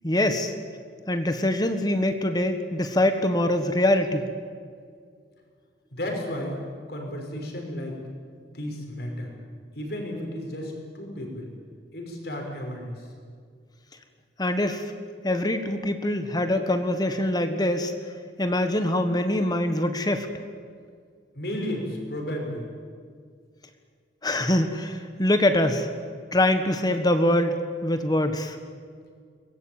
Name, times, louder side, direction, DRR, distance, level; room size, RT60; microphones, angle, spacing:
voice 1, 0.0-0.5 1.1-4.3 14.4-14.8 15.2-17.9 18.4-20.3 24.2-25.9 26.3-27.6 27.8-28.6, left 1 dB, 20° left, 8 dB, 1.5 m, -24 dB
voice 2, 5.9-6.6 6.9-8.0 8.5-9.3 9.7-11.5 11.9-13.1 21.3-22.7, left 1 dB, 60° left, 1 dB, 5.9 m, -33 dB
23.5 x 20.5 x 8.9 m, 2.1 s
head